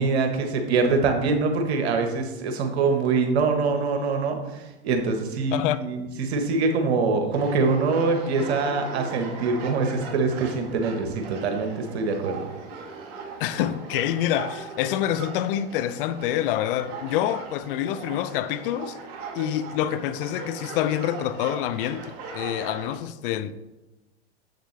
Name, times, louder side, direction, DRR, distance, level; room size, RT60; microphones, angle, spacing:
voice 1, 0.0-12.5, right 4 dB, 70° right, 1.3 m, -24 dB
sound 1, 7.3-23.0, right 4 dB, 45° right, 1.5 m, -39 dB
voice 2, 13.4-19.0 19.3-23.5, left 11 dB, 55° left, 0.6 m, -27 dB
7.3 x 6.8 x 3.2 m
hypercardioid pair, 105°, 33 cm